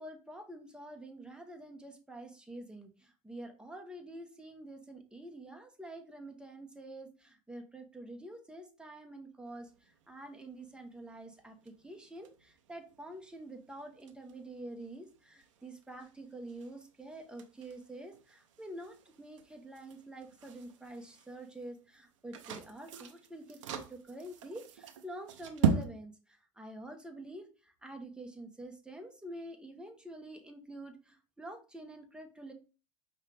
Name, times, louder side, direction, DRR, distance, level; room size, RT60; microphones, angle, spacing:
voice 1, 0.0-32.5, right 1 dB, 5° right, 4 dB, 1.0 m, -47 dB
sound 1, 9.5-25.8, right 6 dB, 85° right, 0.6 m, -40 dB
5.4 x 2.5 x 3.3 m, 0.34 s
hypercardioid pair, 85°, 16 cm